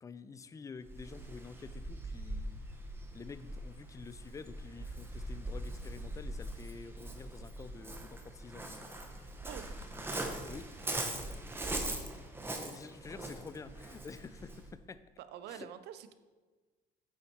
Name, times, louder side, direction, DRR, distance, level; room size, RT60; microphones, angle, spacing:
voice 1, 0.0-2.6 3.1-8.9 10.5-10.7 12.4-15.0 15.5-15.7, left 5 dB, 20° left, 14 dB, 0.3 m, -49 dB
Waves surf, 0.8-14.7, right 1 dB, 15° right, 0.9 m, -41 dB
voice 2, 15.2-16.1, right 10 dB, 75° right, 11 dB, 0.6 m, -47 dB
8.5 x 4.2 x 4.5 m, 1.3 s
cardioid pair, 110°, 17 cm